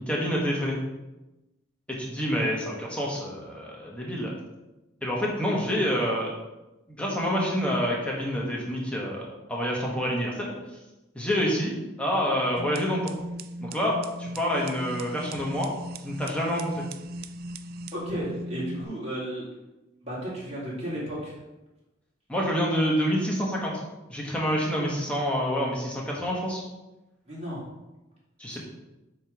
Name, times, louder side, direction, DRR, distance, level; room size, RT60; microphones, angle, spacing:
voice 1, 0.1-0.8 1.9-4.3 5.0-6.3 6.9-10.5 11.1-13.1 13.6-15.7 16.0-16.8 22.3-23.7 24.1-26.6 28.4-28.6, equal, 5° left, -4 dB, 1.4 m, -27 dB
sound 1, 12.6-18.8, right 1 dB, 50° right, 0.3 m, -38 dB
voice 2, 17.9-19.4 20.0-21.4 27.3-27.6 28.5-28.6, equal, 35° right, -7 dB, 2.5 m, -34 dB
7.9 x 3.2 x 5.2 m, 1.0 s
head